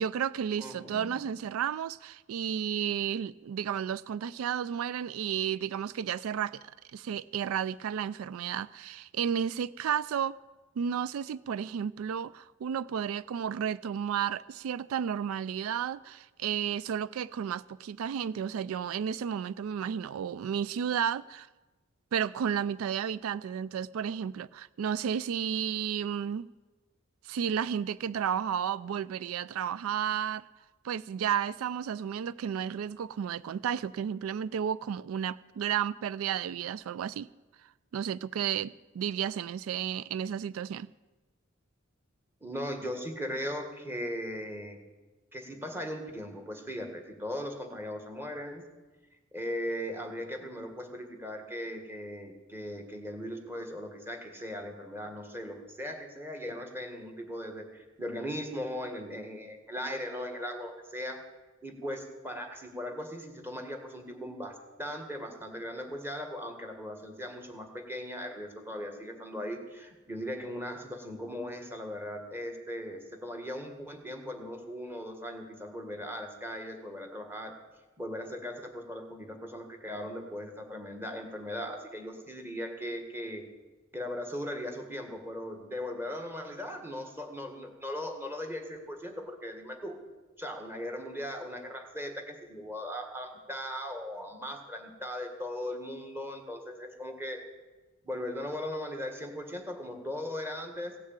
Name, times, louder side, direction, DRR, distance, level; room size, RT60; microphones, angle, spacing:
voice 1, 0.0-6.6 6.9-10.4 10.8-21.5 22.1-26.5 27.2-30.5 30.8-37.3 37.9-40.9, right 8 dB, 85° right, 0.3 m, -32 dB
voice 2, 0.6-1.2 42.4-44.8 45.3-48.6 49.3-61.2 61.6-77.5 78.0-83.4 83.9-90.0 90.4-97.4 98.0-100.9, equal, 10° right, 1.7 m, -38 dB
16.5 x 6.6 x 8.9 m
head